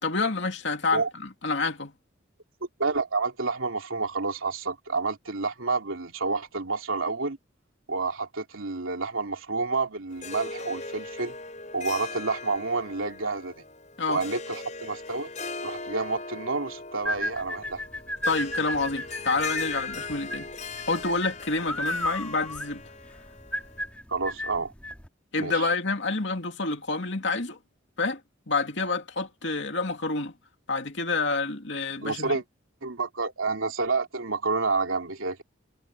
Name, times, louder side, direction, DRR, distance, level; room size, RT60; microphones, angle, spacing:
voice 1, 0.0-1.9 14.0-14.2 18.3-20.5 20.9-22.8 25.3-27.6 28.0-28.2 28.5-30.3 30.7-32.4, left 3 dB, 65° left, 2.6 m, -28 dB
voice 2, 2.8-7.4 7.9-11.3 11.7-13.6 14.1-15.3 15.6-17.8 24.1-24.7 25.4-25.7 32.0-32.4 32.8-35.4, right 3 dB, 90° right, 3.1 m, -29 dB
Harp, 10.1-23.9, left 4 dB, 35° left, 6.4 m, -39 dB
sound 1, 17.0-25.1, left 1 dB, 5° left, 2.7 m, -34 dB
head